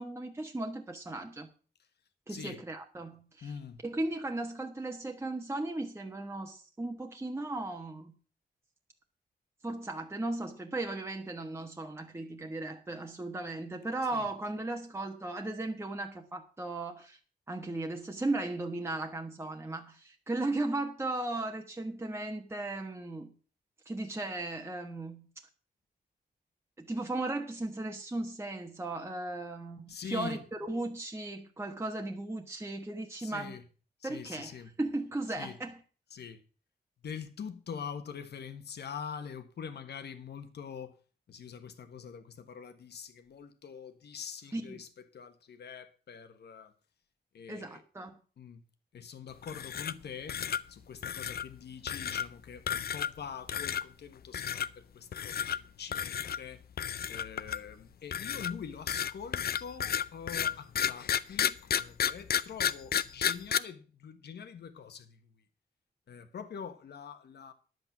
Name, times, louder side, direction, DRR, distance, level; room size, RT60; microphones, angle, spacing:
voice 1, 0.0-1.5 2.3-3.5 3.8-8.2 9.6-17.2 17.5-23.3 23.8-25.3 26.8-33.6 34.0-35.8 44.5-44.8 47.5-48.1, right 2 dB, 15° right, 1.2 m, -36 dB
voice 2, 2.3-2.6 3.4-3.8 14.1-14.2 29.9-30.4 33.2-33.6 34.0-34.7 35.3-35.6 36.1-36.4 37.0-40.9 41.3-46.7 47.3-47.8 48.4-48.6 48.9-50.4 50.7-56.6 57.1-65.2 66.1-67.5, left 7 dB, 80° left, 1.5 m, -44 dB
sound 1, 49.4-50.0 50.3-50.6 51.0-51.5 51.9-52.3 52.7-53.2 53.5-53.8 54.3-54.7 55.1-55.6 55.9-56.4 56.8-57.7 58.1-63.6, left 9 dB, 65° left, 0.6 m, -31 dB
11.0 x 8.0 x 6.0 m
wide cardioid pair, 130°, 17 cm